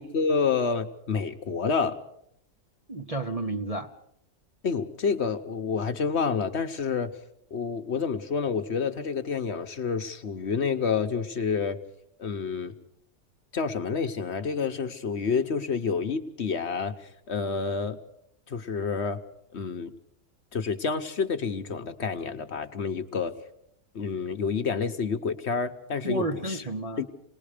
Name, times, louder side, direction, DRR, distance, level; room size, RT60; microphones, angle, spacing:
voice 1, 0.0-2.0 4.6-7.1 7.5-11.8 12.2-12.7 13.5-17.0 17.3-18.0 18.5-19.2 19.5-19.9 20.5-23.3 23.9-26.6 27.0-27.1, left 5 dB, 55° left, 1.1 m, -28 dB
voice 2, 2.9-3.9 26.0-27.0, right 2 dB, 30° right, 0.8 m, -31 dB
27.5 x 19.5 x 5.0 m
omnidirectional pair, 1.5 m